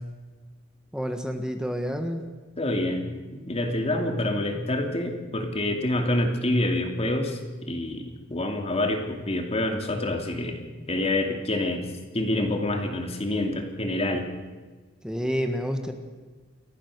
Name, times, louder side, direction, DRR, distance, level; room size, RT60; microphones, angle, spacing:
voice 1, 0.9-2.2 15.0-15.9, equal, 5° right, 5 dB, 1.5 m, -29 dB
voice 2, 2.6-3.0 3.3-7.4 7.7-10.6 10.9-11.8 12.1-14.3, left 1 dB, 30° left, 4 dB, 2.9 m, -27 dB
29.5 x 14.0 x 6.7 m, 1.3 s
head